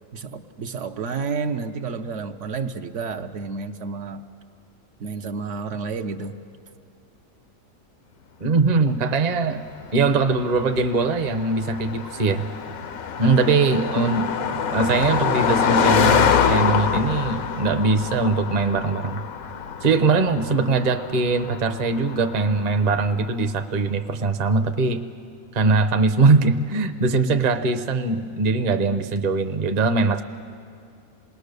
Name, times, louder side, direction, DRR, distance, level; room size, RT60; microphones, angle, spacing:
voice 1, 0.1-4.2 5.0-6.4, right 5 dB, 65° right, 6 dB, 1.1 m, -30 dB
voice 2, 8.4-9.6 9.9-12.5 13.2-19.2 19.8-25.0 25.5-30.2, right 3 dB, 35° right, 7 dB, 0.8 m, -21 dB
Car passing by, 9.5-23.2, left 7 dB, 90° left, 1.3 m, -25 dB
27.5 x 19.5 x 6.7 m, 2.4 s
omnidirectional pair, 1.4 m